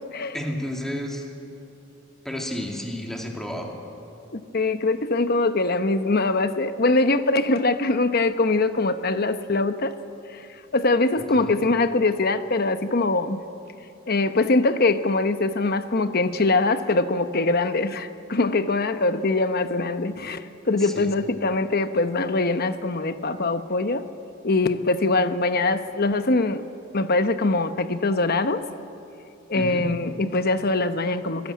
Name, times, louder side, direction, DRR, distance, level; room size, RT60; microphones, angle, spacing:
voice 1, 0.3-1.3 2.2-3.8 11.3-11.5 20.8-21.1 29.5-29.9, equal, ahead, 0 dB, 2.6 m, -31 dB
voice 2, 4.3-9.9 10.3-10.5 10.7-13.4 14.1-24.1 24.4-26.7 26.9-28.6 29.5-31.5, left 2 dB, 50° left, 10 dB, 1.0 m, -23 dB
25.0 x 17.5 x 8.5 m, 2.7 s
head